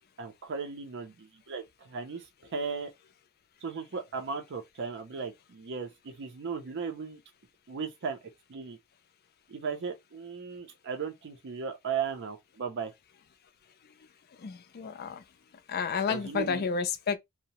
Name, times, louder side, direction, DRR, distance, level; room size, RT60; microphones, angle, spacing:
voice 1, 0.2-2.9 3.6-7.2 7.7-8.2 8.5-8.8 9.5-12.9 16.1-16.6, right 5 dB, 55° right, 0.5 m, -36 dB
voice 2, 14.4-15.2 15.7-17.2, left 5 dB, 45° left, 0.4 m, -31 dB
2.7 x 2.0 x 2.8 m
head